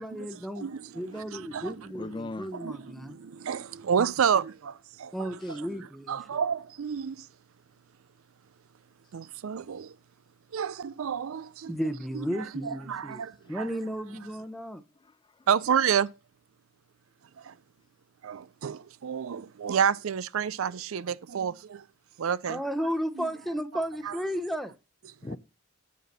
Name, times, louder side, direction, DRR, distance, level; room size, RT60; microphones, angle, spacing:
voice 1, 0.0-0.7 0.9-3.2 5.1-6.2 11.7-13.2 13.5-14.8 22.5-24.7, equal, ahead, 0.8 m, -34 dB
voice 2, 0.6-1.7 2.6-5.7 6.1-7.3 9.1-9.9 10.5-11.7 12.1-13.7 15.5-16.1 17.4-17.5 18.2-21.8 22.2-22.9 23.2-23.3 24.0-24.2, right 7 dB, 70° right, 0.4 m, -30 dB
voice 3, 1.8-2.5 2.8-3.0 5.4-5.9 13.1-13.6 14.9-15.5 25.2-25.4, left 2 dB, 20° left, 0.4 m, -42 dB
9.4 x 5.8 x 6.7 m
head